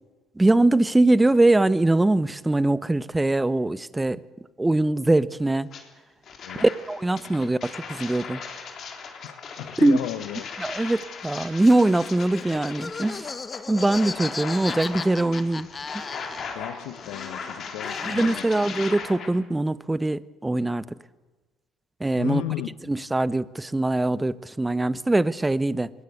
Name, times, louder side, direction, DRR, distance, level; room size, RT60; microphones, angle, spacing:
voice 1, 0.4-4.2 4.6-5.7 6.5-8.4 9.8-10.0 10.6-13.3 13.7-15.7 18.0-20.9 22.0-22.4 22.9-25.9, right 2 dB, 15° right, 0.8 m, -22 dB
sound 1, 5.7-5.8 6.2-19.3, left 5 dB, 55° left, 3.8 m, -38 dB
voice 2, 9.2-10.4 16.5-18.4 22.1-22.7, left 14 dB, 80° left, 0.9 m, -33 dB
Laughter, 11.6-16.8 17.0-19.0, left 4 dB, 30° left, 1.1 m, -37 dB
21.0 x 17.5 x 8.1 m
hypercardioid pair, 65°, 0 cm